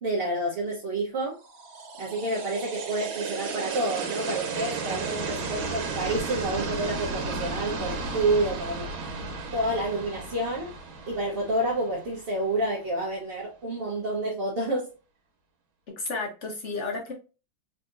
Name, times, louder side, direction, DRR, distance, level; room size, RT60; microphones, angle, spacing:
voice 1, 0.0-1.4 2.0-8.9 9.5-10.7 11.1-14.9, right 1 dB, 45° right, 0.7 m, -29 dB
sound 1, 1.5-12.5, right 4 dB, 80° right, 1.7 m, -34 dB
voice 2, 15.9-17.1, left 3 dB, 65° left, 0.7 m, -32 dB
3.6 x 2.7 x 2.4 m
omnidirectional pair, 2.1 m